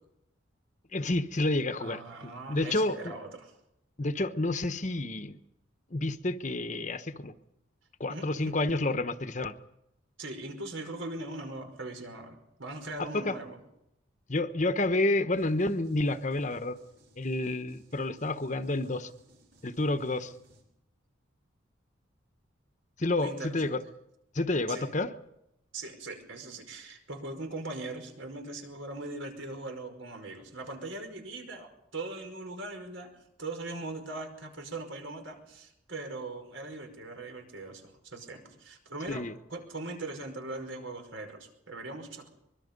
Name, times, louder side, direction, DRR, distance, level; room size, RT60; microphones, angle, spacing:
voice 1, 0.9-3.1 4.0-5.4 5.9-7.3 8.0-9.5 13.0-13.4 14.3-16.8 17.2-19.1 19.6-20.3 23.0-23.8 24.3-25.1 39.1-39.3, left 2 dB, 40° left, 10 dB, 1.1 m, -29 dB
voice 2, 1.8-3.6 8.1-8.5 10.2-13.6 23.2-23.8 24.7-24.9 25.7-33.1 33.4-39.2 39.5-42.3, right 2 dB, 80° right, 5 dB, 5.3 m, -40 dB
sound 1, 15.3-20.6, right 1 dB, 65° right, 6.8 m, -62 dB
24.0 x 22.5 x 5.4 m, 0.84 s
head